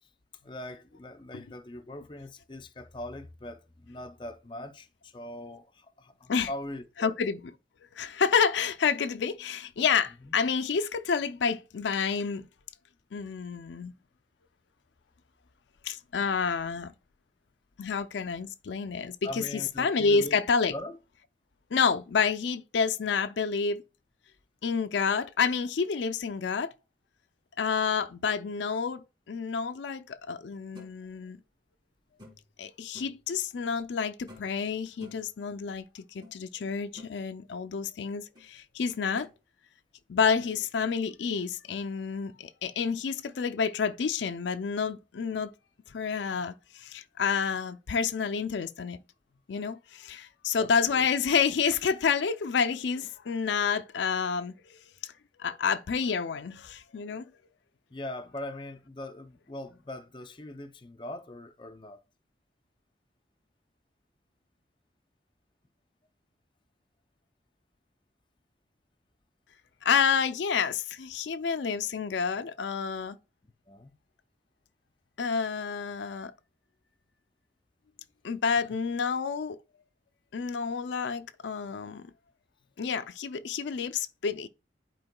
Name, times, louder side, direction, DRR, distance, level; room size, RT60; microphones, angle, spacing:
voice 1, 0.4-7.2 10.2-10.3 19.2-20.4 20.7-21.0 50.6-51.1 57.9-62.0 73.4-73.9, left 1 dB, 25° left, 0.5 m, -41 dB
voice 2, 7.0-7.4 8.0-12.5 13.1-13.9 15.8-16.9 17.8-20.7 21.7-23.8 24.6-26.7 27.6-31.4 32.6-39.3 40.1-45.5 45.9-49.0 49.5-54.5 55.0-55.1 55.4-57.2 69.8-73.2 75.2-76.3 78.2-79.6 80.3-82.1 82.8-84.5, left 6 dB, 75° left, 0.4 m, -29 dB
sound 1, 30.7-30.9 32.2-32.5 32.9-33.2 34.3-34.6 35.0-35.3 36.2-36.3 36.7-37.2 38.3-38.5 39.2-39.3, left 2 dB, 25° right, 2.1 m, -49 dB
10.5 x 4.6 x 2.2 m
head